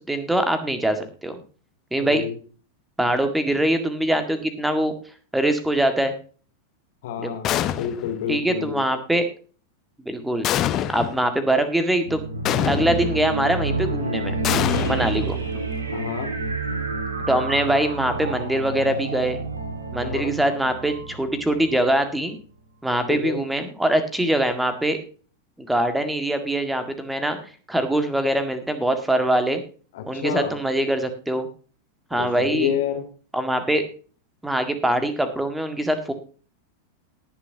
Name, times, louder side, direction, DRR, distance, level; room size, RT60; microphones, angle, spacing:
voice 1, 0.0-1.4 1.9-2.2 3.0-4.9 5.3-6.1 7.2-7.3 8.3-9.3 10.1-10.5 10.9-12.2 12.6-14.3 14.9-15.4 17.3-19.4 19.9-22.4 22.8-25.0 25.6-27.4 27.7-29.6 30.1-31.5 32.1-32.7 33.3-33.8 34.4-36.1, right 1 dB, 5° right, 8 dB, 1.9 m, -23 dB
voice 2, 1.9-2.4 7.0-8.8 15.9-16.3 20.0-20.3 23.1-23.4 29.9-30.5 32.1-33.0, left 8 dB, 55° left, 4 dB, 3.1 m, -29 dB
sound 1, 7.4-8.2 10.4-11.2 12.4-13.2 14.4-15.7, left 11 dB, 35° left, 0.9 m, -25 dB
sound 2, 12.0-22.3, right 3 dB, 70° right, 2.5 m, -29 dB
19.5 x 7.0 x 2.8 m, 0.39 s
figure-of-eight pair, 90°, 0 cm